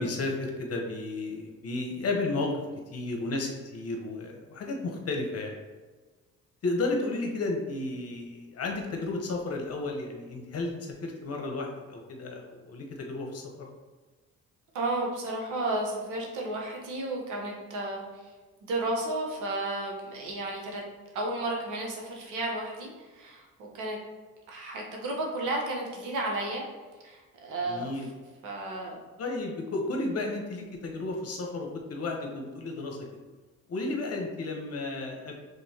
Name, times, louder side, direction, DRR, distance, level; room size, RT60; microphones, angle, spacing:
voice 1, 0.0-2.6 2.9-5.6 6.6-13.7 27.7-28.1 29.2-33.2 33.7-35.3, left 2 dB, 55° left, 2 dB, 1.0 m, -33 dB
voice 2, 14.7-18.3 18.6-20.8 21.1-24.0 24.5-26.6 27.0-27.9 28.4-29.0, right 2 dB, 90° right, -1 dB, 1.1 m, -33 dB
5.4 x 3.4 x 2.8 m, 1.3 s
cardioid pair, 90°, 30 cm